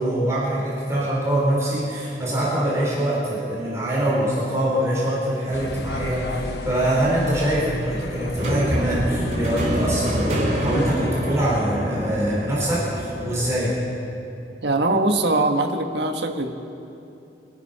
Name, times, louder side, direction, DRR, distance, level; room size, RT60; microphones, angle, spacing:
voice 1, 0.0-13.8, right 1 dB, 15° right, -7 dB, 4.2 m, -24 dB
sound 1, 5.5-11.1, left 2 dB, 65° left, 0.9 m, -34 dB
sound 2, 8.4-13.6, equal, 40° right, 2.9 m, -26 dB
voice 2, 14.6-16.5, right 2 dB, 70° right, 5 dB, 1.3 m, -22 dB
25.0 x 9.3 x 5.7 m, 2.8 s
head